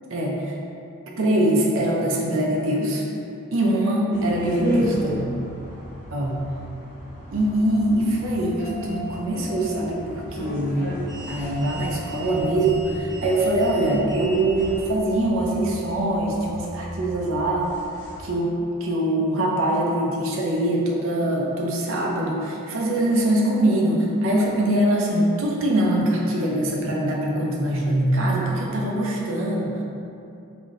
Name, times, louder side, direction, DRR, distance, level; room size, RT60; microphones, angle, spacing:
voice 1, 0.1-0.6 1.2-3.0 3.5-5.3 6.1-6.4 7.3-10.9 11.3-17.7 18.2-18.5 18.8-29.8, right 1 dB, 65° right, -2 dB, 0.5 m, -23 dB
sound 1, 4.1-18.3, equal, 35° left, 1.1 m, -33 dB
3.5 x 2.6 x 3.7 m, 2.6 s
head